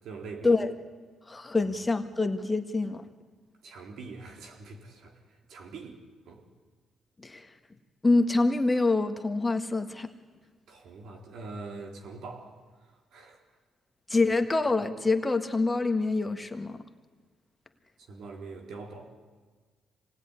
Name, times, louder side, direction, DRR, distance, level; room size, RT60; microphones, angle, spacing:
voice 1, 0.0-0.6 3.6-6.0 6.3-6.4 10.7-12.6 13.1-13.4 18.0-19.1, right 3 dB, 75° right, 3 dB, 3.8 m, -43 dB
voice 2, 1.3-3.0 7.2-7.5 8.0-10.1 14.1-16.8, left 3 dB, 20° left, 6 dB, 1.7 m, -26 dB
26.0 x 19.5 x 9.9 m, 1.4 s
cardioid pair, 90°, 0 cm